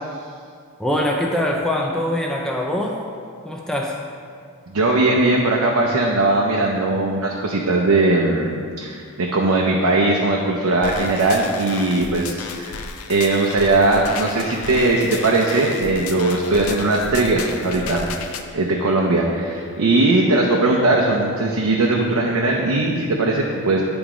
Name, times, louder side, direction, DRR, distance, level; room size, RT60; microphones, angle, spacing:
voice 1, 0.8-3.0 3.4-4.0, left 1 dB, 5° left, -1 dB, 0.4 m, -23 dB
voice 2, 4.7-12.7 13.1-18.0 18.5-23.8, right 2 dB, 90° right, -1 dB, 0.6 m, -19 dB
sound 1, 10.8-18.4, left 5 dB, 70° left, 0.5 m, -33 dB
8.9 x 3.5 x 4.9 m, 2.2 s
head